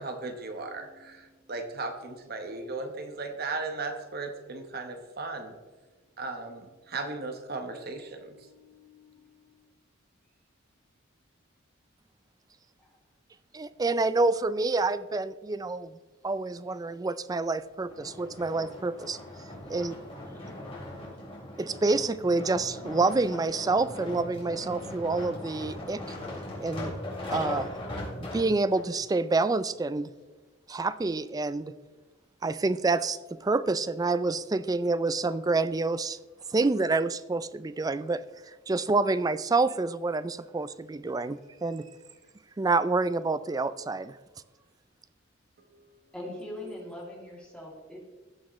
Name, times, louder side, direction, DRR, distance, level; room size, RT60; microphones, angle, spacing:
voice 1, 0.0-5.5 6.2-6.6 6.9-8.3 8.6-9.0 45.7-45.8, right 3 dB, 50° right, 5 dB, 1.0 m, -36 dB
voice 2, 13.5-16.0 16.2-19.2 19.7-20.0 21.6-26.0 26.6-26.9 27.3-27.7 28.3-30.1 30.7-31.7 32.4-36.2 36.5-41.8 42.6-44.2, right 3 dB, 20° right, 15 dB, 0.3 m, -28 dB
sound 1, 17.9-28.9 29.5-29.6, left 1 dB, 30° left, 3.6 m, -39 dB
voice 3, 41.6-42.0 46.1-48.0, left 1 dB, 5° left, -4 dB, 2.6 m, -42 dB
17.0 x 6.4 x 3.1 m, 1.2 s
head